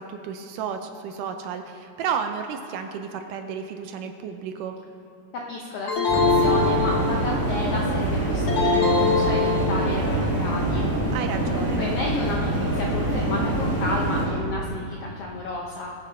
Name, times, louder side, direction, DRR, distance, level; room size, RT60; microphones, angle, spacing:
voice 1, 0.0-4.8 11.1-11.9, right 7 dB, 75° right, 7 dB, 2.1 m, -32 dB
voice 2, 5.3-10.9 11.4-15.9, left 2 dB, 75° left, -1 dB, 1.4 m, -32 dB
sound 1, 5.9-7.4 8.5-10.1, left 4 dB, 55° left, 2.2 m, -23 dB
sound 2, 6.1-14.3, right 1 dB, 5° left, 2.3 m, -25 dB
19.0 x 6.6 x 5.5 m, 2.7 s
omnidirectional pair, 4.0 m